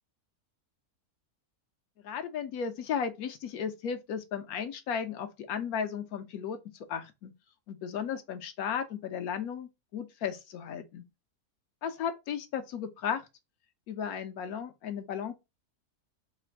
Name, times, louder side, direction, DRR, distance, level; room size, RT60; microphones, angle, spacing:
voice 1, 2.0-6.6 6.9-7.3 7.7-11.0 11.8-13.3 13.9-15.3, left 7 dB, 75° left, 1.0 m, -35 dB
3.1 x 2.5 x 4.3 m
omnidirectional pair, 1.6 m